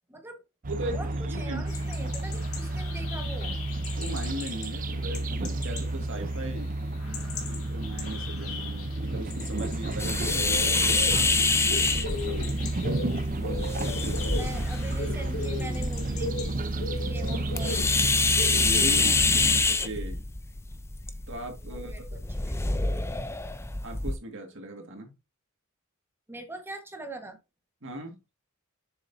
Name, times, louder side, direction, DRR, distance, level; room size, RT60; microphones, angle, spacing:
voice 1, 0.1-0.4 0.8-3.6 7.0-7.7 14.4-17.9 21.6-22.0 22.4-22.9 26.3-27.4, right 2 dB, 10° right, 1.4 m, -42 dB
sound 1, 0.6-19.6, right 2 dB, 40° right, 0.7 m, -31 dB
voice 2, 0.7-1.6 2.0-2.1 3.9-6.7 7.3-12.7 13.4-14.5 18.5-20.3 21.3-22.2 23.8-25.1 27.8-28.2, right 1 dB, 65° right, 2.1 m, -39 dB
sound 2, 1.7-19.5, left 3 dB, 80° left, 2.4 m, -39 dB
sound 3, 10.0-24.2, left 3 dB, 10° left, 0.6 m, -27 dB
7.0 x 7.0 x 2.7 m
head